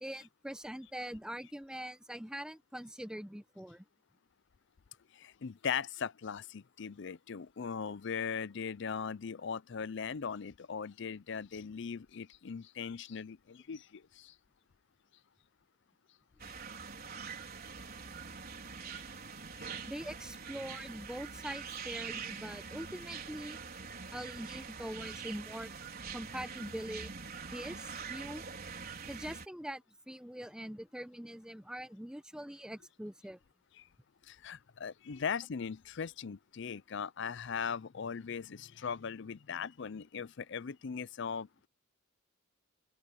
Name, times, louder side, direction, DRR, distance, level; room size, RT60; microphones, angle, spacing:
voice 1, 0.0-3.9 19.9-23.6 24.1-25.7 26.1-27.2 27.5-28.4 29.1-33.4, equal, 5° right, 0.8 m, -43 dB
voice 2, 5.1-14.3 19.6-19.7 33.8-33.9 34.3-41.7, left 6 dB, 60° left, 0.5 m, -39 dB
sound 1, 16.4-29.5, right 5 dB, 50° right, 4.6 m, -44 dB
open air
head